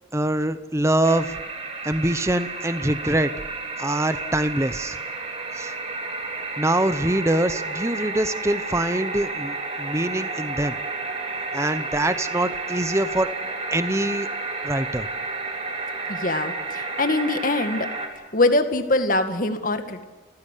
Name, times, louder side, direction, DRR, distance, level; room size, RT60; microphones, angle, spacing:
voice 1, 0.1-1.4 1.8-3.3 3.8-5.0 5.5-5.7 6.6-10.8 11.5-13.3 13.7-14.3 14.6-15.1, right 1 dB, 15° right, 11 dB, 0.9 m, -24 dB
sound 1, 1.0-18.1, right 3 dB, 35° right, 3.7 m, -31 dB
voice 2, 16.1-17.9 18.3-20.0, left 2 dB, 45° left, 7 dB, 2.0 m, -23 dB
29.5 x 15.5 x 8.4 m, 1.3 s
head